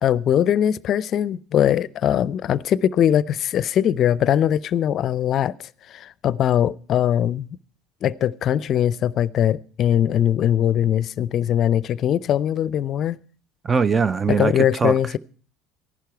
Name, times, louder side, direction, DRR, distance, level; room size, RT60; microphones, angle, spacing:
voice 1, 0.0-5.5 5.9-7.6 8.0-13.2 14.3-15.2, left 10 dB, 50° left, 0.5 m, -21 dB
voice 2, 13.6-15.0, right 5 dB, 25° right, 0.5 m, -21 dB
15.0 x 11.5 x 4.6 m
hypercardioid pair, 70°, 0 cm